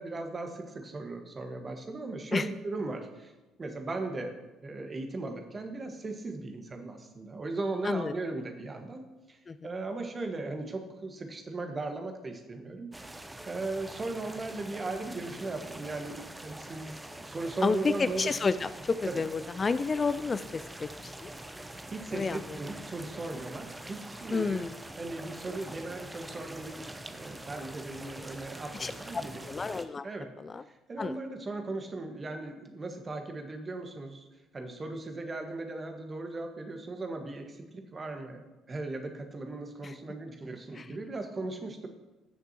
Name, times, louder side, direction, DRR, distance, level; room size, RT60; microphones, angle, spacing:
voice 1, 0.0-3.3 3.6-4.4 4.6-9.0 9.3-9.4 9.6-13.2 13.5-18.3 19.1-19.2 21.9-24.6 25.0-29.4 30.0-30.3 30.7-34.2 34.5-41.9, right 2 dB, 30° right, 5 dB, 1.6 m, -37 dB
sound 1, 12.9-29.8, right 1 dB, 10° right, 0.9 m, -44 dB
voice 2, 17.6-21.3 22.1-22.6 24.3-24.8 28.7-30.1 30.4-30.6 31.0-31.2 39.8-39.9 40.7-40.9, left 4 dB, 30° left, 14 dB, 0.3 m, -31 dB
16.0 x 6.7 x 3.0 m, 1.1 s
figure-of-eight pair, 50°, 0 cm